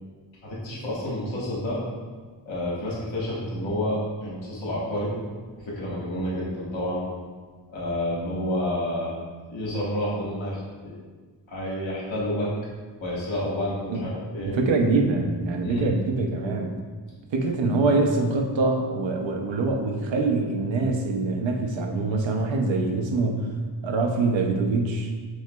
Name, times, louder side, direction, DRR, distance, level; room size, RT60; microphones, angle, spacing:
voice 1, 0.4-1.8 2.4-5.1 5.5-7.1 7.7-9.1 9.5-11.0 11.5-12.5 13.0-14.6 15.6-16.0, left 1 dB, 80° left, -7 dB, 1.4 m, -29 dB
voice 2, 14.4-16.7 17.3-23.5 23.8-25.1, right 3 dB, 75° right, 3 dB, 0.6 m, -24 dB
6.2 x 2.8 x 2.2 m, 1.4 s
wide cardioid pair, 125°, 46 cm